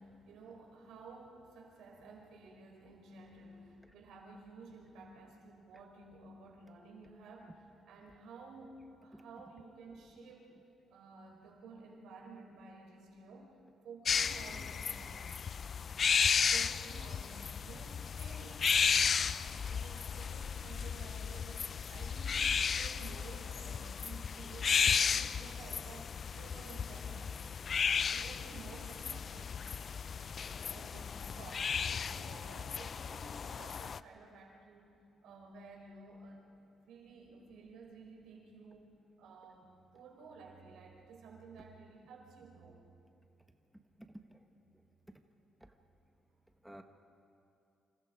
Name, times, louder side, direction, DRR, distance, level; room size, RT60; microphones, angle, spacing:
voice 1, 0.0-10.5 10.9-13.6 13.8-15.4 16.5-27.6 27.9-29.6 30.6-31.6 32.1-34.9 35.2-36.5 36.8-38.9 39.2-42.8, right 3 dB, 80° right, 1 dB, 4.7 m, -53 dB
sound 1, 14.1-34.0, left 6 dB, 45° left, 0.5 m, -34 dB
voice 2, 44.0-44.4 45.6-45.7 46.6-46.8, right 1 dB, 5° right, 5 dB, 1.4 m, -51 dB
28.0 x 26.5 x 5.1 m, 2.6 s
cardioid pair, 90°, 0 cm